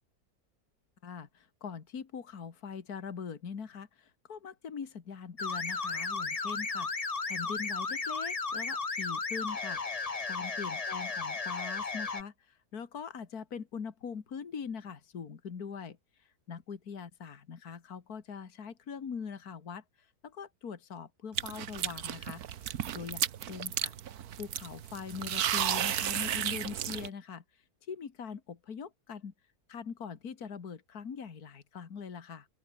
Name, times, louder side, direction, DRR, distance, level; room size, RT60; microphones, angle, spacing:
voice 1, 1.0-23.9 24.4-29.3 29.7-32.5, left 6 dB, 70° left, 2.3 m, -42 dB
sound 1, 5.4-12.2, left 4 dB, 25° left, 1.2 m, -34 dB
sound 2, 21.4-27.1, right 10 dB, 70° right, 1.5 m, -33 dB
open air
omnidirectional pair, 1.7 m